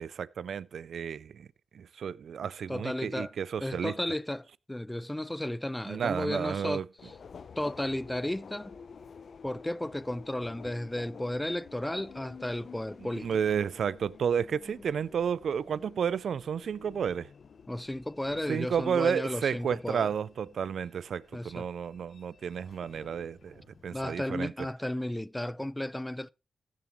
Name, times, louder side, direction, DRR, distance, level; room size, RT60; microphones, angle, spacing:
voice 1, 0.0-1.5 1.7-4.0 5.9-6.9 13.0-17.3 18.5-24.5, right 7 dB, 75° right, 0.4 m, -32 dB
voice 2, 2.7-3.3 3.6-7.1 7.6-8.8 9.4-13.4 17.7-20.1 21.3-21.7 23.9-26.3, left 1 dB, 10° left, 0.4 m, -34 dB
Subway metro underground, 7.0-24.2, left 6 dB, 65° left, 0.7 m, -51 dB
15.5 x 7.3 x 3.1 m
cardioid pair, 65°, 0 cm